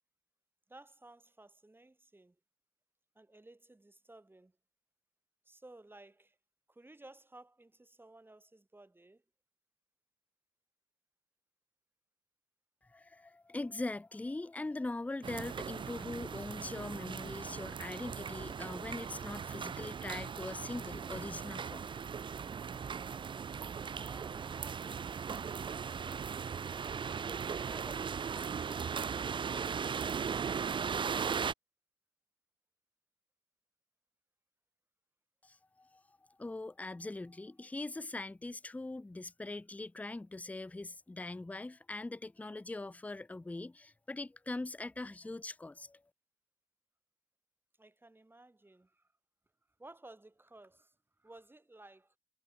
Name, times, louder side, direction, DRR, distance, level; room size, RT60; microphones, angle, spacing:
voice 1, 0.7-2.4 3.2-4.6 5.5-6.4 6.7-9.2 23.9-26.0 47.8-49.1 49.8-52.2, right 2 dB, 15° right, 7.2 m, -56 dB
voice 2, 12.9-21.9 35.4-36.0 36.4-46.0, left 2 dB, 10° left, 0.6 m, -42 dB
sound 1, 15.2-31.5, right 6 dB, 35° right, 0.5 m, -38 dB
supercardioid pair, 75°, 14 cm